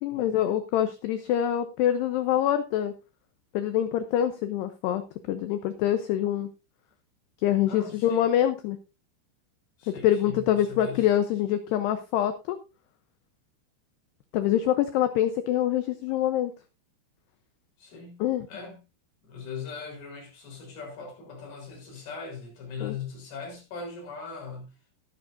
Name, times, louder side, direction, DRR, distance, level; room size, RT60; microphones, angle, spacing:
voice 1, 0.0-2.9 3.5-6.5 7.4-8.8 10.0-12.6 14.3-16.5 18.2-18.5 22.8-22.9, left 11 dB, 85° left, 2.4 m, -25 dB
voice 2, 7.7-8.3 9.8-11.1 17.8-18.2 18.5-18.8 19.2-24.8, left 5 dB, 50° left, 5.3 m, -40 dB
15.0 x 11.5 x 2.5 m
omnidirectional pair, 5.8 m